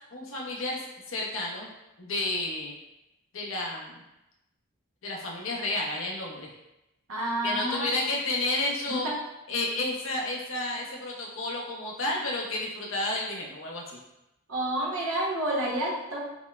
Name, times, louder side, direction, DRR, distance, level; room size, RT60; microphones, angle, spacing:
voice 1, 0.1-1.7 2.0-2.7 3.3-4.0 5.0-6.5 7.4-9.1 9.5-14.0, left 2 dB, 65° left, -2 dB, 0.7 m, -31 dB
voice 2, 7.1-7.9 8.9-9.1 14.5-16.2, right 1 dB, 70° right, -4 dB, 0.8 m, -29 dB
5.9 x 2.1 x 2.2 m, 0.93 s
head